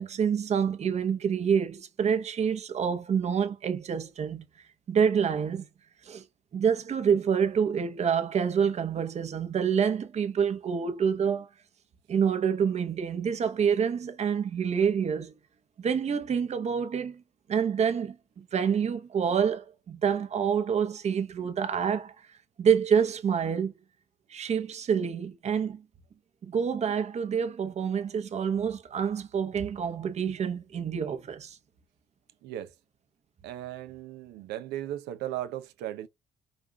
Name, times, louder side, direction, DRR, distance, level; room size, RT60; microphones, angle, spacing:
voice 1, 0.0-4.4 4.9-5.7 6.0-6.2 6.5-11.5 12.1-15.3 15.8-17.2 17.5-22.1 22.6-23.7 24.3-25.8 26.4-31.6, right 7 dB, 40° right, 1.0 m, -27 dB
voice 2, 32.4-32.7 33.4-36.1, right 12 dB, 85° right, 0.7 m, -36 dB
5.2 x 2.4 x 3.4 m
cardioid pair, 110°, 17 cm